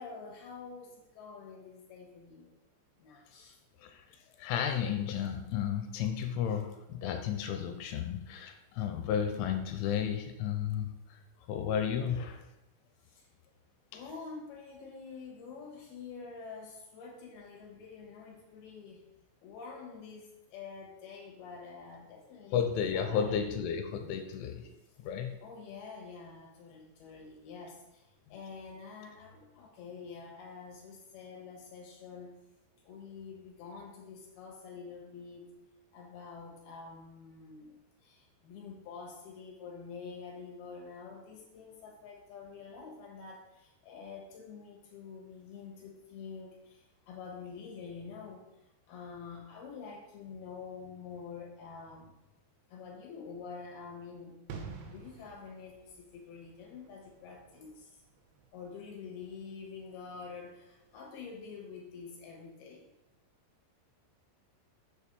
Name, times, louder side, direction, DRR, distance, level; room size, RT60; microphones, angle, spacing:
voice 1, 0.0-2.5 3.0-3.6 13.1-13.2 13.9-19.0 19.4-23.4 25.4-28.0 28.3-32.4 32.8-35.6 35.9-37.7 38.0-48.4 48.9-52.1 52.7-54.4 54.9-57.9 58.5-62.9, left 5 dB, 65° left, 0 dB, 2.8 m, -47 dB
voice 2, 4.4-10.9 11.5-12.4 13.9-14.0 22.5-24.7 25.0-25.4, left 8 dB, 85° left, 6 dB, 3.1 m, -33 dB
sound 1, 54.5-61.0 61.2-61.4, right 5 dB, 75° right, 3.1 m, -50 dB
7.3 x 4.6 x 6.9 m, 0.93 s
omnidirectional pair, 5.7 m